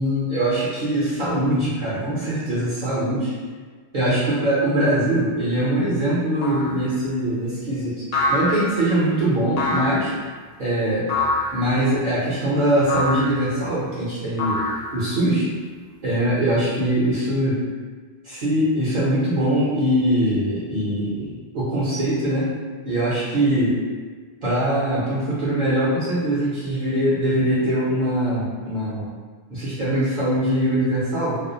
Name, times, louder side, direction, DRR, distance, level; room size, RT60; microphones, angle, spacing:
voice 1, 0.0-3.3 3.9-8.0 8.3-10.1 10.6-11.1 11.5-14.6 14.9-15.5 16.0-17.6 18.2-22.5 22.8-23.8 24.4-29.1 29.5-31.4, right 1 dB, 50° right, -9 dB, 0.7 m, -22 dB
sound 1, 6.4-6.8 8.1-8.9 9.6-10.1 11.1-11.6 12.9-13.4 14.4-15.1, left 2 dB, 45° left, 0.6 m, -25 dB
2.4 x 2.0 x 2.7 m, 1.5 s
omnidirectional pair, 1.1 m